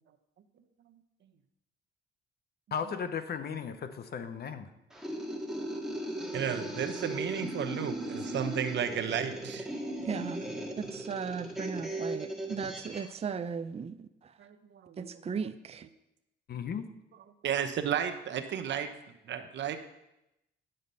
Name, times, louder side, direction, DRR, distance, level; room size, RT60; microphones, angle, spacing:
voice 1, 2.7-4.7 16.5-16.9, left 7 dB, 55° left, 10 dB, 0.9 m, -36 dB
sound 1, 4.9-13.1, right 1 dB, ahead, 1.8 m, -37 dB
voice 2, 6.3-9.7 14.4-15.1 17.4-18.9 19.3-19.8, right 8 dB, 65° right, 7 dB, 0.9 m, -33 dB
voice 3, 10.0-10.5 10.8-14.4 15.0-15.9, right 6 dB, 30° right, 10 dB, 0.5 m, -37 dB
10.5 x 6.7 x 5.5 m, 0.88 s
cardioid pair, 90°, 20 cm